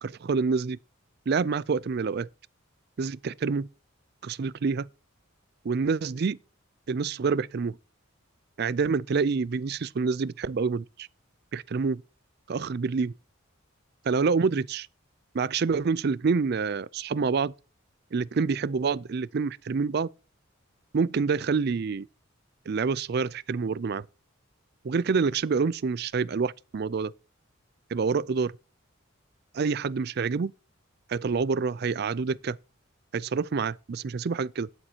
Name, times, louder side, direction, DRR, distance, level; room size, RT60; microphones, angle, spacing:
voice 1, 0.0-0.8 1.3-2.3 3.0-3.7 4.2-4.9 5.6-6.4 6.9-7.8 8.6-11.1 11.5-12.0 12.5-13.1 14.1-14.9 15.3-17.5 18.1-20.1 20.9-22.1 22.7-24.1 24.8-27.1 27.9-28.5 29.5-30.5 31.1-32.6 33.1-34.7, right 5 dB, 50° right, 0.4 m, -27 dB
12.5 x 10.5 x 2.8 m
head